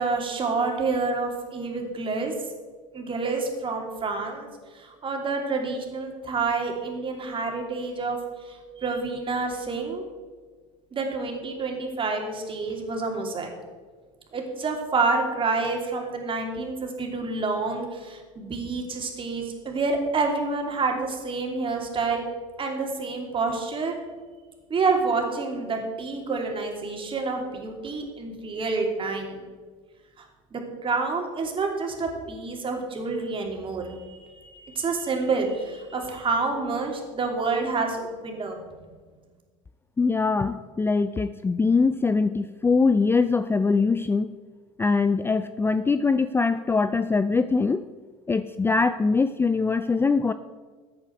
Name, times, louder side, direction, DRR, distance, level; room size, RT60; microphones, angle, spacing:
voice 1, 0.0-2.3 2.9-4.5 4.7-10.1 10.9-13.5 14.3-22.3 22.6-23.9 24.7-29.4 30.2-30.3 30.5-38.8, right 4 dB, 35° right, 2 dB, 2.8 m, -28 dB
voice 2, 40.0-44.3 44.8-47.8 48.3-50.3, left 4 dB, 15° left, 13 dB, 0.4 m, -22 dB
14.0 x 8.9 x 4.6 m, 1.5 s
hypercardioid pair, 85°, 16 cm